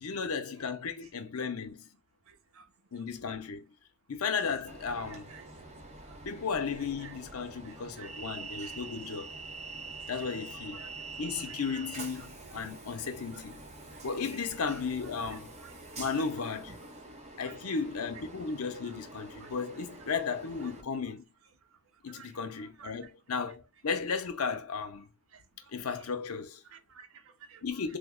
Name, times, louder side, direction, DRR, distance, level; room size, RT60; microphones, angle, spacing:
voice 1, 0.0-1.9 2.9-3.6 4.1-5.3 6.2-9.3 10.1-10.8 11.2-13.6 14.0-15.5 16.0-16.8 17.4-21.3 22.0-25.1 25.7-26.6 27.6-28.0, left 5 dB, 80° left, 0.7 m, -35 dB
voice 2, 2.3-2.6 5.1-5.4 6.1-6.2 7.0-7.1 7.6-8.4 10.7-10.9 11.5-11.8 12.2-12.3 12.6-12.7 14.3-14.5 15.3-15.7 16.1-16.2 17.4-17.8 18.8-18.9 19.4-19.5 22.1-22.3 22.6-23.1 25.3-25.4 26.7-27.6, right 6 dB, 70° right, 0.5 m, -53 dB
Train, 4.7-20.8, right 3 dB, 30° right, 0.6 m, -46 dB
3.4 x 2.1 x 3.7 m
head